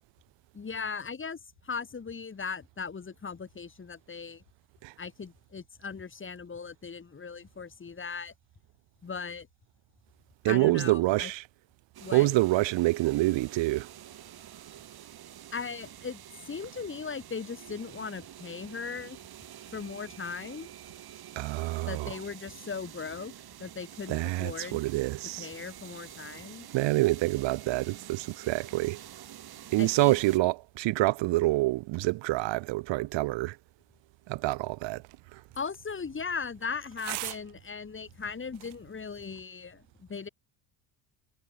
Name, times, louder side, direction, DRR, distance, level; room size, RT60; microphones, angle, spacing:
voice 1, 0.5-4.4 5.0-8.3 9.0-9.5 10.4-11.3 12.0-12.3 15.5-16.2 16.5-19.2 19.7-20.7 21.8-23.3 23.6-24.8 25.4-26.7 29.8-30.2 35.6-40.3, left 5 dB, 25° left, 3.0 m, -38 dB
voice 2, 10.4-11.5 12.1-13.9 21.3-22.2 24.1-25.5 26.7-29.0 29.7-33.6 34.3-35.0 35.3-35.4, right 19 dB, 65° right, 1.4 m, -27 dB
sound 1, 11.9-30.4, right 11 dB, 50° right, 3.6 m, -48 dB
sound 2, 34.4-39.4, right 31 dB, 80° right, 3.8 m, -45 dB
supercardioid pair, 95°, 48 cm